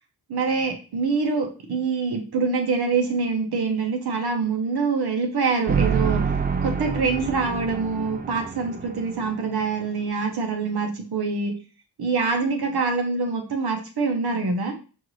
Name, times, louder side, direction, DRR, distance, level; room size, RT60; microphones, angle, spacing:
voice 1, 0.3-6.2 6.6-11.5 12.0-14.7, right 4 dB, 65° right, 3 dB, 1.1 m, -25 dB
sound 1, 5.7-9.7, right 5 dB, 25° right, 0.5 m, -27 dB
4.5 x 2.6 x 3.1 m, 0.35 s
cardioid pair, 90°, 41 cm